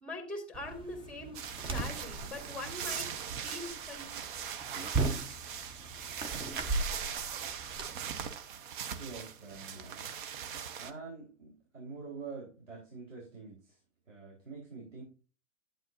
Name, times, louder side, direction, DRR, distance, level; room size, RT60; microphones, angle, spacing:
voice 1, 0.0-1.4 1.7-3.1 3.4-4.1, left 2 dB, ahead, 4 dB, 2.5 m, -42 dB
sound 1, 0.5-7.9, right 3 dB, 15° right, 1.0 m, -38 dB
sound 2, 1.3-10.9, right 8 dB, 40° right, 1.0 m, -40 dB
voice 2, 9.0-10.1 10.8-13.8 14.1-15.0, right 4 dB, 75° right, -4 dB, 4.5 m, -46 dB
11.5 x 8.9 x 2.7 m, 0.35 s
figure-of-eight pair, 110°, 39 cm